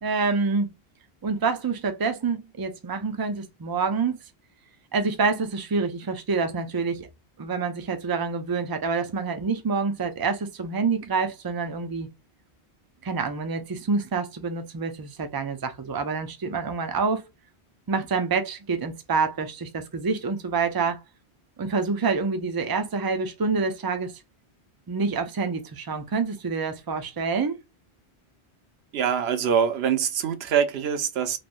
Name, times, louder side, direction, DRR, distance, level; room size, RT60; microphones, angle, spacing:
voice 1, 0.0-0.7 1.2-4.2 4.9-7.1 7.4-12.1 13.0-17.2 17.9-21.0 21.6-24.1 24.9-27.6, right 4 dB, 35° right, 0.4 m, -27 dB
voice 2, 28.9-31.4, right 7 dB, 70° right, 0.8 m, -24 dB
3.2 x 2.1 x 2.4 m
omnidirectional pair, 1.1 m